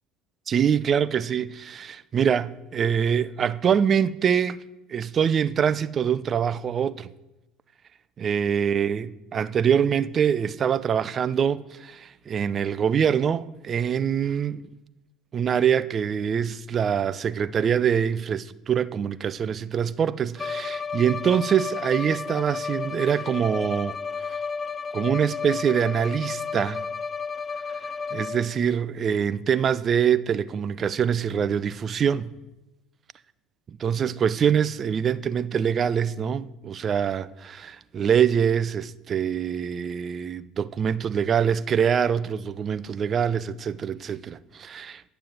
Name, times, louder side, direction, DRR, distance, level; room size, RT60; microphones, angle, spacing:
voice 1, 0.5-4.6 4.9-7.1 8.2-14.6 15.3-23.9 24.9-26.8 28.1-32.3 33.8-45.0, right 8 dB, 40° right, 0.5 m, -24 dB
Bowed string instrument, 20.4-28.6, left 5 dB, 25° left, 0.6 m, -32 dB
9.3 x 6.9 x 7.4 m
supercardioid pair, 90°, 0 cm